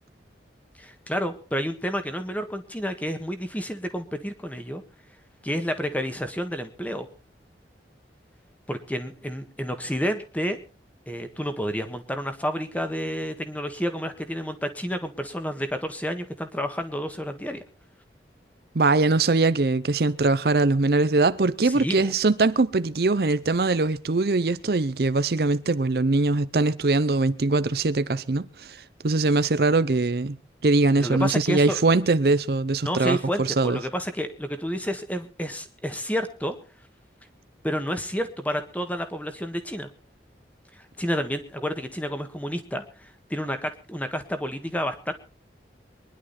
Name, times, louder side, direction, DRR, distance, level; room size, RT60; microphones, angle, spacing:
voice 1, 0.8-4.8 5.4-7.1 8.7-10.6 11.1-17.6 21.6-22.0 31.0-31.8 32.8-36.6 37.6-39.9 40.7-45.1, equal, 10° left, 1.6 m, -30 dB
voice 2, 18.7-30.4 30.6-33.8, right 3 dB, 60° right, 0.6 m, -22 dB
23.0 x 11.0 x 4.2 m
head